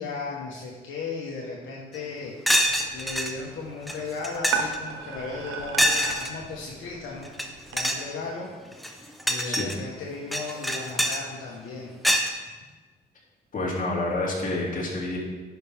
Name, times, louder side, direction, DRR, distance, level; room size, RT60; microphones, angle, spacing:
voice 1, 0.0-2.3 2.9-7.3 7.7-8.5 9.3-11.9 12.3-12.5, left 4 dB, 75° left, -3 dB, 1.4 m, -36 dB
sound 1, 1.9-2.0 2.5-3.3 3.9-4.0 4.2-4.8 5.8-6.3 7.2-7.5 7.7-8.1 8.7-9.7 10.3-11.2 12.0-12.3, equal, ahead, 0.9 m, -24 dB
sound 2, 2.7-7.8, right 5 dB, 80° right, 1.0 m, -36 dB
voice 2, 13.5-15.2, left 2 dB, 45° left, -4 dB, 2.8 m, -28 dB
10.5 x 5.9 x 3.5 m, 1.3 s
cardioid pair, 90°, 20 cm